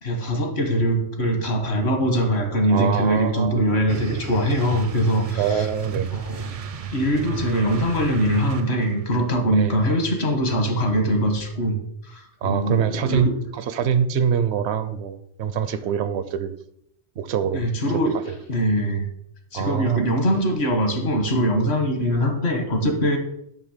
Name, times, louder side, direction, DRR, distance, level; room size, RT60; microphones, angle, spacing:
voice 1, 0.0-5.7 6.1-6.5 6.9-11.7 12.0-13.3 17.5-18.2 18.5-19.1 19.5-23.2, equal, 65° left, 4 dB, 1.7 m, -22 dB
voice 2, 2.7-3.7 5.4-6.1 9.5-9.8 12.4-16.5 17.2-17.6 17.9-18.4 19.5-20.0, right 7 dB, 70° right, 13 dB, 0.8 m, -24 dB
sound 1, 3.9-9.0, right 6 dB, 55° right, 0.4 m, -33 dB
8.8 x 3.3 x 6.6 m, 0.73 s
omnidirectional pair, 1.2 m